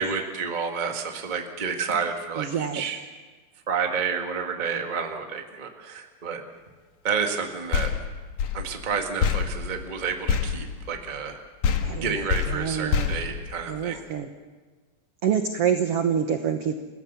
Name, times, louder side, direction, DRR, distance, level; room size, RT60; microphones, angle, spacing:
voice 1, 0.0-3.0 3.7-6.4 7.0-7.9 8.5-11.4 12.0-14.0, right 6 dB, 25° right, 4 dB, 1.0 m, -30 dB
voice 2, 2.4-2.8 11.8-12.2 12.5-13.2 13.7-14.3 15.2-16.8, right 8 dB, 75° right, 7 dB, 1.4 m, -26 dB
sound 1, 7.7-11.4 11.6-14.1, left 7 dB, 60° left, 2.4 m, -27 dB
29.5 x 16.5 x 7.0 m, 1.4 s
omnidirectional pair, 4.2 m